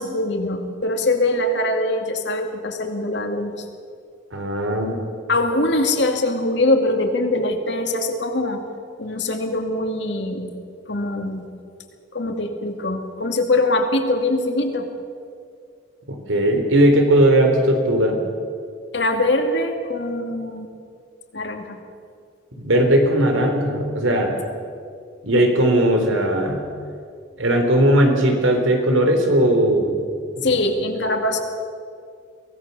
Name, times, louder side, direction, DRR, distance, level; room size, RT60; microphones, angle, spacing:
voice 1, 0.0-3.7 5.3-8.6 9.0-10.5 10.9-11.5 12.1-14.9 18.9-20.7 21.3-21.8 30.4-31.4, left 2 dB, 60° left, 4 dB, 2.3 m, -22 dB
voice 2, 4.3-5.1 16.1-18.2 22.6-24.4 25.2-26.6 27.4-30.0, right 1 dB, 90° right, 4 dB, 3.6 m, -18 dB
23.5 x 17.0 x 6.9 m, 2.2 s
head